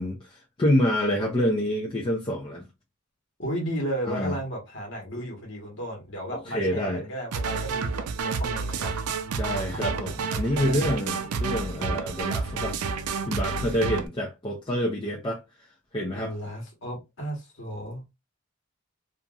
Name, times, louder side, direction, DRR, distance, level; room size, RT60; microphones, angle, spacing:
voice 1, 0.0-2.6 4.1-4.4 6.3-7.1 9.4-12.8 13.3-16.3, equal, 20° left, 0.4 m, -27 dB
voice 2, 3.4-9.0 10.5-11.2 16.1-18.0, equal, 55° left, 1.2 m, -34 dB
sound 1, 7.3-14.1, right 4 dB, 85° right, 0.4 m, -30 dB
2.9 x 2.5 x 2.3 m
head